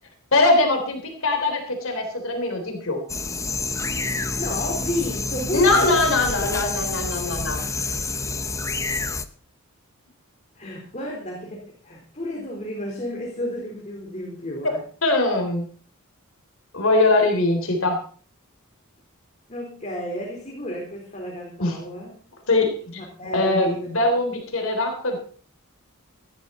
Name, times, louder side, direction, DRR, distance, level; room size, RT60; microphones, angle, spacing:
voice 1, 0.3-3.0 5.5-7.6 15.0-15.7 16.7-18.0 21.6-21.8 22.5-23.0 23.3-25.2, left 2 dB, 65° left, 4 dB, 3.5 m, -21 dB
sound 1, 3.1-9.3, left 3 dB, 15° left, 0.8 m, -28 dB
voice 2, 4.3-6.1 10.5-14.8 17.1-17.3 19.5-22.2 23.0-23.9, left 1 dB, 30° left, -2 dB, 4.2 m, -32 dB
17.0 x 12.5 x 4.2 m, 0.42 s
head